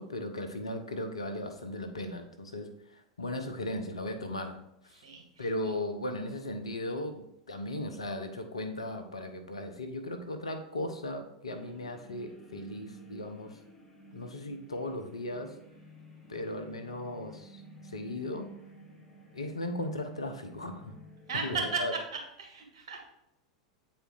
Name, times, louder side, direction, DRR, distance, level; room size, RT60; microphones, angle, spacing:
voice 1, 0.0-4.6 4.8-5.0 5.4-13.6 14.1-15.5 16.3-18.5 19.3-20.9 21.4-21.9, left 1 dB, 85° left, 7 dB, 0.9 m, -37 dB
voice 2, 5.0-5.5 21.3-22.0 22.4-23.0, right 4 dB, 65° right, 0 dB, 2.0 m, -34 dB
sound 1, 11.5-21.4, right 2 dB, 20° left, 1.1 m, -53 dB
8.3 x 4.3 x 3.9 m, 0.82 s
figure-of-eight pair, 90°, 3 cm